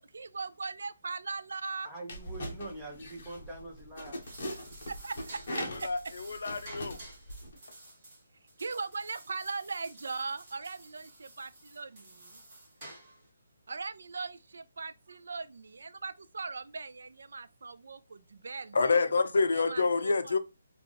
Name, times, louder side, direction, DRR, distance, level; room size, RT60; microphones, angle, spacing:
voice 1, 0.0-1.9 4.9-6.1 8.6-12.4 13.7-19.0 19.5-20.3, right 4 dB, 65° right, 0.4 m, -39 dB
voice 2, 1.8-4.2 18.9-19.2, right 2 dB, 5° right, 0.8 m, -44 dB
sound 1, 2.1-7.6, left 1 dB, 35° left, 0.9 m, -41 dB
sound 2, 4.0-13.3, right 1 dB, 20° right, 1.4 m, -52 dB
voice 3, 5.8-7.0 18.7-20.4, left 4 dB, 60° left, 0.5 m, -27 dB
3.3 x 2.3 x 3.9 m
hypercardioid pair, 180°, 0 cm